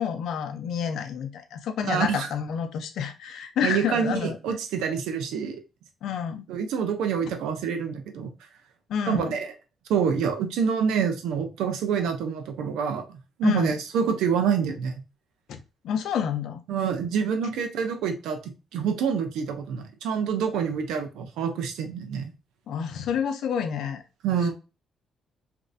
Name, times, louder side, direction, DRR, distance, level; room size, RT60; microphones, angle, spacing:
voice 1, 0.0-4.4 6.0-6.5 8.9-9.4 13.4-13.7 15.5-15.6 15.8-16.6 22.7-24.0, left 7 dB, 75° left, 0.5 m, -29 dB
voice 2, 1.8-2.3 3.6-5.6 6.5-8.3 9.1-9.5 9.9-14.9 16.7-22.3 24.2-24.5, right 7 dB, 90° right, 0.6 m, -27 dB
3.1 x 2.6 x 2.6 m
cardioid pair, 90°, 0 cm